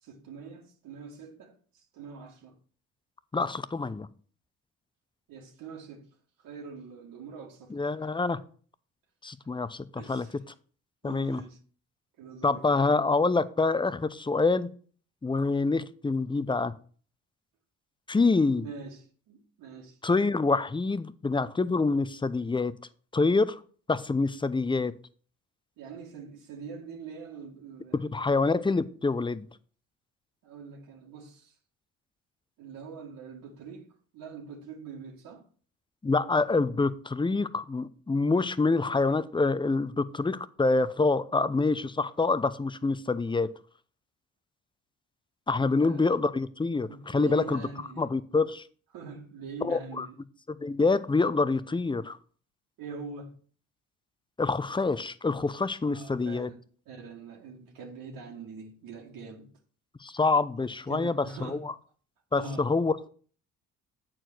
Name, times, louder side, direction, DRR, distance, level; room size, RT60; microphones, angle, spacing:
voice 1, 0.0-1.5 1.9-2.5 5.3-6.1 6.4-7.7 8.0-8.1 10.0-10.4 11.0-11.6 12.2-13.0 18.6-20.0 25.8-28.0 30.4-31.5 32.6-33.9 34.1-35.4 45.6-46.1 46.9-48.0 48.9-50.2 52.8-53.4 55.9-56.6 56.9-59.5 60.9-61.7 62.3-62.7, right 4 dB, 65° right, 2.0 m, -43 dB
voice 2, 3.3-4.1 7.7-8.4 9.2-10.3 11.0-11.4 12.4-14.7 15.2-16.7 18.1-18.7 20.0-22.7 23.1-23.6 23.9-24.9 27.9-29.5 36.0-43.5 45.5-47.6 48.0-48.6 49.6-50.1 50.5-52.2 54.4-56.5 60.0-61.7 62.3-63.1, left 3 dB, 15° left, 0.7 m, -26 dB
8.8 x 4.6 x 6.1 m
hypercardioid pair, 55°, 36 cm